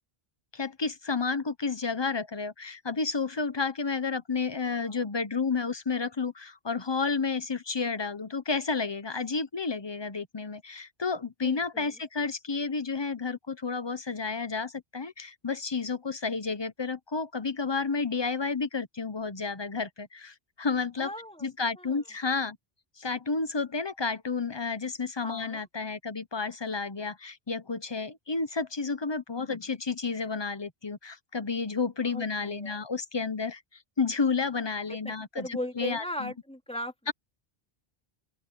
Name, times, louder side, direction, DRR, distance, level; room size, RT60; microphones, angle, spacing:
voice 1, 0.5-21.1 21.4-22.6 23.0-33.6 34.0-36.3 37.1-37.2, left 4 dB, 25° left, 0.9 m, -31 dB
voice 2, 4.6-5.0 11.4-12.0 21.0-22.0 25.2-25.6 32.0-32.8 34.9-36.9, left 1 dB, 5° left, 3.3 m, -39 dB
open air
omnidirectional pair, 1.0 m